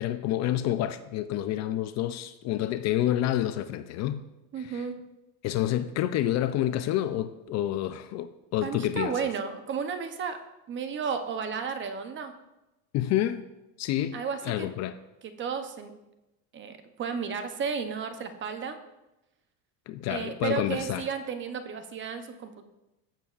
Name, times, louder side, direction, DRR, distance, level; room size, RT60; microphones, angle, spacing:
voice 1, 0.0-4.2 4.6-4.8 5.4-9.2 12.9-13.5 13.8-14.2 14.4-15.0 19.9-21.1, left 12 dB, 45° left, 0.4 m, -28 dB
voice 2, 4.5-5.0 8.6-10.4 10.7-12.3 14.1-14.7 15.2-15.9 16.5-18.8 20.1-22.7, right 6 dB, 30° right, 0.7 m, -33 dB
14.5 x 7.0 x 2.4 m
cardioid pair, 145°, 38 cm